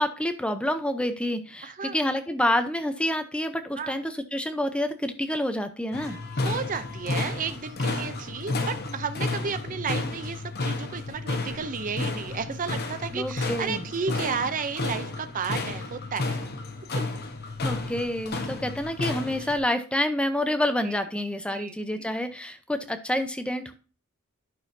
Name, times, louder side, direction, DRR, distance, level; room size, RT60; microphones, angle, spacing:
voice 1, 0.0-6.2 13.1-13.8 17.6-23.7, left 1 dB, 5° left, 8 dB, 0.7 m, -28 dB
voice 2, 1.6-2.0 3.8-4.0 6.0-6.2 6.4-16.4 19.4-19.5 20.8-21.0 21.5-22.1, right 5 dB, 35° right, 11 dB, 0.5 m, -33 dB
sound 1, 5.9-19.6, left 2 dB, 45° left, 1.1 m, -32 dB
11.5 x 6.3 x 2.7 m, 0.37 s
head